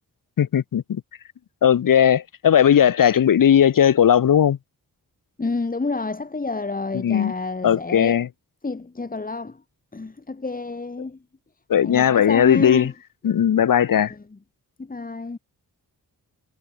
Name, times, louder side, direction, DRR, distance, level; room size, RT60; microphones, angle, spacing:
voice 1, 0.4-1.0 1.6-4.6 6.9-7.3 7.6-8.3 11.7-12.9 13.2-14.1, left 9 dB, 55° left, 0.8 m, -17 dB
voice 2, 5.4-8.2 8.6-9.6 9.9-11.2 11.8-12.9 14.8-15.4, left 3 dB, 20° left, 1.2 m, -29 dB
wide cardioid pair, 95°, 39 cm